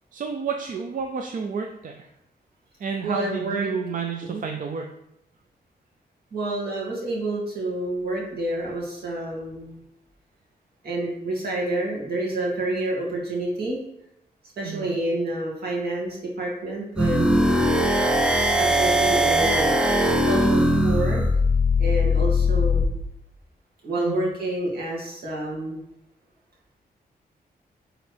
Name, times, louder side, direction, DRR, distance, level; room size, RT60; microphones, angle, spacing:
voice 1, 0.1-2.1 2.8-4.9 14.6-15.0 24.0-24.3, right 5 dB, 55° right, 3 dB, 0.5 m, -31 dB
voice 2, 3.0-3.7 4.2-4.4 6.3-9.8 10.8-13.8 14.6-17.5 18.6-19.8 20.2-21.2 21.8-22.9 23.8-25.8, right 2 dB, 70° right, -3 dB, 2.2 m, -28 dB
sound 1, 17.0-22.9, left 1 dB, 5° right, 0.5 m, -20 dB
9.5 x 3.8 x 3.4 m, 0.85 s
wide cardioid pair, 170°, 16 cm